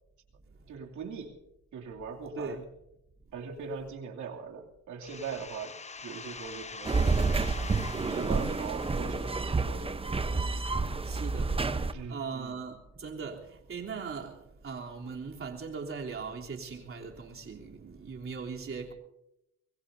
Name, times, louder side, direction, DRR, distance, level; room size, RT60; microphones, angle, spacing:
voice 1, 0.7-1.4 1.7-2.6 3.3-7.3 7.9-10.0 11.9-12.6, right 5 dB, 75° right, 2.9 m, -41 dB
sound 1, 5.0-10.5, left 4 dB, 20° left, 0.8 m, -45 dB
sound 2, 6.8-11.9, right 3 dB, 20° right, 0.9 m, -29 dB
voice 2, 11.0-14.3 14.6-18.9, right 5 dB, 45° right, 3.4 m, -39 dB
24.5 x 21.0 x 2.8 m
cardioid pair, 90°, 30 cm